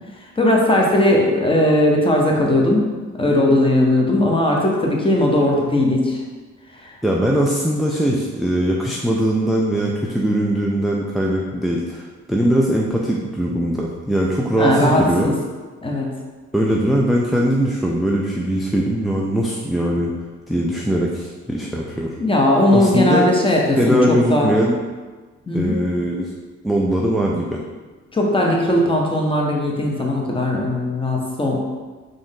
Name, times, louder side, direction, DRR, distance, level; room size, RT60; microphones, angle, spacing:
voice 1, 0.4-2.8 3.1-6.2 6.7-6.9 14.6-15.4 15.8-16.1 22.2-24.5 25.5-25.7 28.1-31.6, left 1 dB, 15° left, -1 dB, 0.9 m, -18 dB
voice 2, 7.0-15.3 16.5-20.1 20.5-22.2 22.7-23.3 23.8-24.8 25.5-26.3 26.6-27.6, right 1 dB, ahead, -3 dB, 0.4 m, -20 dB
3.5 x 2.6 x 3.6 m, 1.3 s
hypercardioid pair, 50°, 34 cm